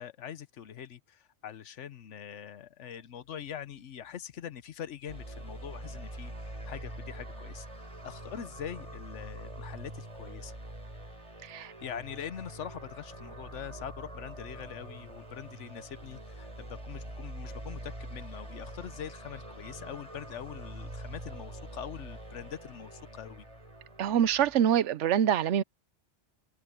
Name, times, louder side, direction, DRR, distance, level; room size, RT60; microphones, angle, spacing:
voice 1, 0.0-7.7 8.0-10.5 11.6-23.5, left 9 dB, 90° left, 1.2 m, -43 dB
sound 1, 5.1-24.6, right 1 dB, 30° right, 4.6 m, -44 dB
voice 2, 11.4-11.7 24.0-25.6, right 9 dB, 90° right, 1.0 m, -25 dB
omnidirectional pair, 1.2 m